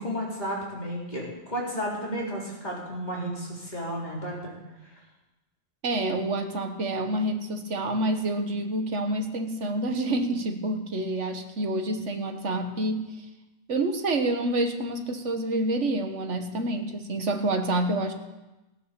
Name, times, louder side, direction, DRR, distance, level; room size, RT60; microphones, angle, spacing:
voice 1, 0.0-4.5, equal, 40° left, -4 dB, 4.1 m, -32 dB
voice 2, 5.8-13.1 13.7-18.1, right 1 dB, 80° right, 6 dB, 1.7 m, -28 dB
16.5 x 9.5 x 6.8 m, 1.0 s
omnidirectional pair, 1.2 m